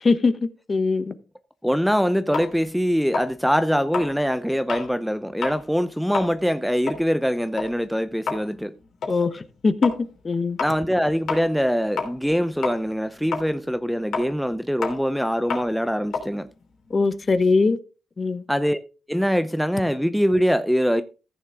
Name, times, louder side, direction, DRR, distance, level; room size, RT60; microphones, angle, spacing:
voice 1, 0.0-0.3 0.7-1.1 9.1-9.9 10.2-10.6 16.9-17.8 18.2-18.4, left 4 dB, 35° left, 1.0 m, -21 dB
voice 2, 1.6-8.7 10.6-16.5 18.5-18.8 19.1-21.0, equal, ahead, 0.6 m, -23 dB
sound 1, 2.3-4.9 5.3-5.6 6.0-12.4 12.6-17.4, left 5 dB, 80° left, 3.0 m, -32 dB
14.5 x 6.9 x 3.6 m
cardioid pair, 95°, 0 cm